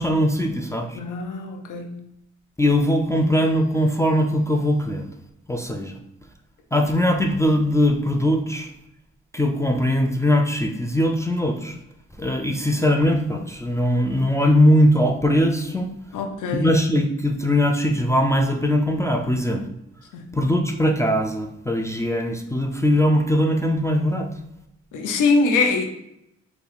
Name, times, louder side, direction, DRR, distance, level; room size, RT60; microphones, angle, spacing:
voice 1, 0.0-1.0 2.6-5.1 5.5-6.0 6.7-8.7 9.3-11.8 12.2-15.9 16.5-19.7 20.3-24.3, equal, 10° left, 3 dB, 0.5 m, -20 dB
voice 2, 0.9-2.0 16.1-16.7 20.1-20.3 24.9-25.9, left 3 dB, 75° left, 4 dB, 0.7 m, -23 dB
4.5 x 2.3 x 3.4 m, 0.85 s
supercardioid pair, 60°, 31 cm